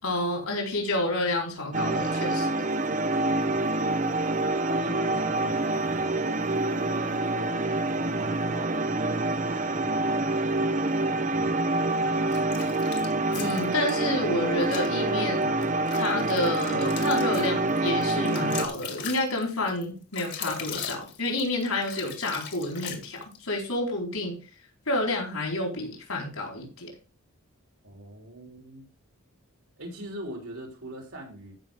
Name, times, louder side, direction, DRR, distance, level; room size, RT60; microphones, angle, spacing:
voice 1, 0.0-2.5 13.3-15.6 15.9-24.4 24.9-26.9, left 2 dB, 75° left, 1 dB, 4.6 m, -29 dB
sound 1, 1.7-18.7, right 2 dB, 35° right, 0.9 m, -26 dB
voice 2, 3.4-3.7 4.6-7.6 7.9-10.2 11.3-11.7 27.8-28.9 29.8-31.5, right 1 dB, 70° right, 1 dB, 3.8 m, -42 dB
sound 2, 12.3-13.9 14.6-14.9 15.4-23.4, left 7 dB, 50° left, 2.1 m, -39 dB
14.5 x 5.9 x 3.7 m, 0.32 s
head